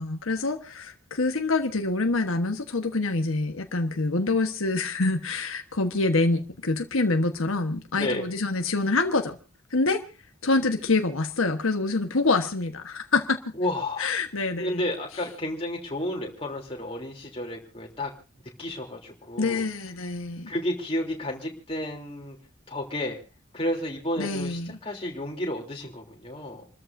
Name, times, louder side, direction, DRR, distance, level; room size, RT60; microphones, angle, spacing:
voice 1, 0.0-9.4 9.7-10.0 10.4-13.4 14.0-14.8 19.4-20.5 24.2-24.8, left 3 dB, 90° left, 5 dB, 1.3 m, -26 dB
voice 2, 13.6-14.1 14.5-18.1 18.6-19.6 20.5-22.4 22.7-23.2 23.5-26.7, left 1 dB, 25° left, 0 dB, 3.3 m, -31 dB
28.5 x 14.0 x 2.7 m, 0.32 s
head